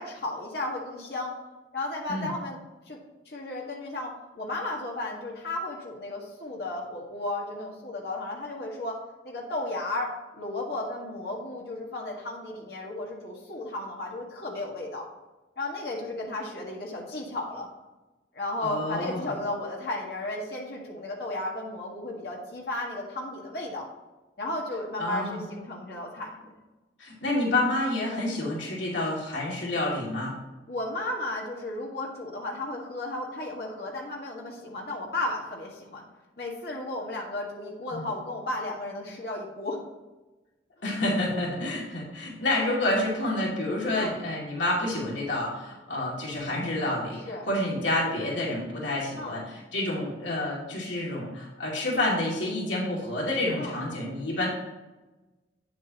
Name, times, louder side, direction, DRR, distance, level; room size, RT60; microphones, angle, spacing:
voice 1, 0.0-1.3 1.7-2.6 2.9-3.0 3.3-15.1 15.6-17.7 18.3-23.9 24.4-26.5 30.7-36.1 36.4-39.8 43.9-44.2 47.3-47.5 49.1-49.4 53.6-53.8, left 2 dB, 60° left, -2 dB, 1.7 m, -34 dB
voice 2, 18.6-19.3 25.0-25.4 27.0-30.3 37.9-38.1 40.8-54.5, left 1 dB, 85° left, -4 dB, 2.6 m, -29 dB
8.6 x 7.7 x 3.0 m, 1.1 s
head